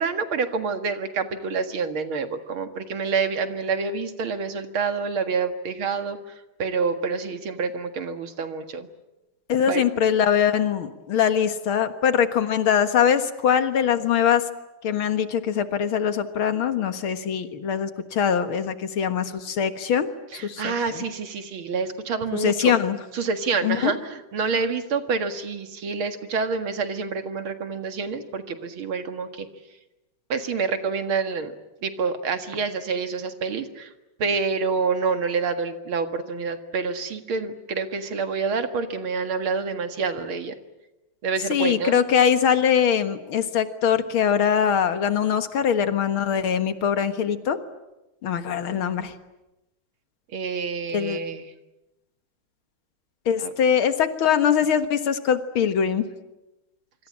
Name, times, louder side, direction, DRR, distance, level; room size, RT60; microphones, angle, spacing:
voice 1, 0.0-6.2 6.6-8.9 9.7-9.9 20.3-22.7 23.1-29.5 30.3-31.5 31.8-33.9 34.2-40.5 41.2-42.0 50.3-51.4 53.4-53.5, right 5 dB, 90° right, 8 dB, 2.7 m, -27 dB
voice 2, 9.5-14.5 14.8-20.1 20.4-21.0 22.3-23.0 23.6-23.9 41.5-47.6 48.2-49.1 50.9-51.2 53.3-56.1, left 8 dB, 85° left, 9 dB, 2.4 m, -22 dB
26.0 x 24.5 x 8.7 m, 0.99 s
omnidirectional pair, 2.2 m